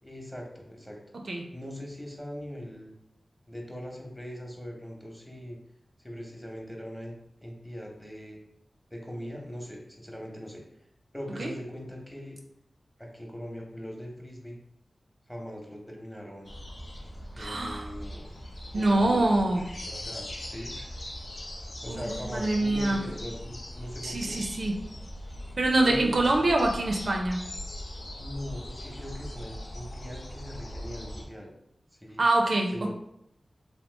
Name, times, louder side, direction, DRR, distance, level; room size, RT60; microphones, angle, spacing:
voice 1, 0.0-1.0 1.5-2.9 3.5-5.6 6.0-7.1 7.4-8.4 8.9-10.6 11.1-12.4 13.0-14.6 15.3-16.5 17.3-18.3 18.7-19.3 19.8-20.7 21.8-24.5 25.8-26.4 28.2-31.5 31.9-32.2 32.7-32.9, equal, ahead, 0 dB, 0.9 m, -40 dB
sound 1, 16.4-31.2, equal, 70° left, 0.5 m, -40 dB
voice 2, 17.4-17.9 18.7-19.6 21.9-23.1 24.0-24.8 25.6-27.4 32.2-32.9, right 2 dB, 70° right, 2 dB, 0.4 m, -25 dB
2.9 x 2.3 x 3.3 m, 0.77 s
cardioid pair, 45°, 0 cm